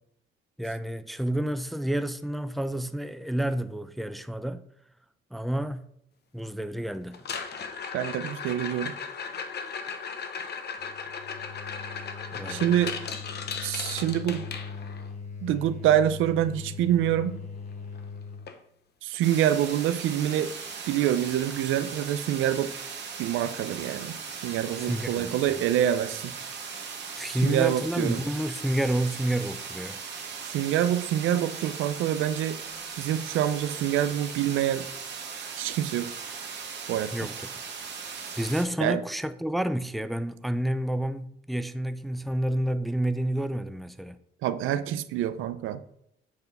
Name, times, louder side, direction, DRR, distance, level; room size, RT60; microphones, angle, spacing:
voice 1, 0.6-4.6 5.3-5.8 6.3-7.2 12.3-12.6 24.8-25.6 27.2-30.0 37.1-37.3 38.4-44.2, right 1 dB, ahead, 0.4 m, -29 dB
sound 1, 7.1-15.1 17.4-17.5 17.7-18.0 18.5-18.6 19.1-19.2 21.1-21.2, left 6 dB, 55° left, 1.0 m, -36 dB
voice 2, 7.9-8.9 12.5-12.9 13.6-14.4 15.4-17.4 19.0-20.5 20.9-22.7 23.2-24.2 24.4-26.3 27.3-28.2 30.4-32.6 33.0-34.9 35.6-36.1 36.9-37.3 38.8-39.0 44.4-45.8, right 11 dB, 90° right, 0.5 m, -26 dB
sound 2, 10.8-18.5, left 5 dB, 35° left, 1.4 m, -40 dB
sound 3, 19.2-38.6, right 5 dB, 60° right, 1.6 m, -38 dB
8.1 x 3.5 x 5.4 m
cardioid pair, 90°, 20 cm